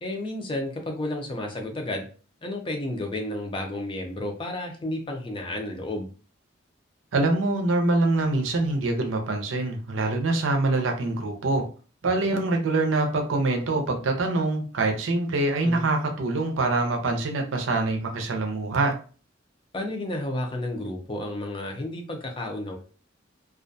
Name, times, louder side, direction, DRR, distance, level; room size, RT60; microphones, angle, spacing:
voice 1, 0.0-2.1 2.4-6.1 15.6-15.8 19.7-22.8, left 1 dB, 25° left, 2 dB, 0.5 m, -31 dB
voice 2, 7.1-11.6 12.0-18.9, right 2 dB, 85° right, 3 dB, 0.5 m, -24 dB
2.4 x 2.1 x 2.6 m, 0.38 s
head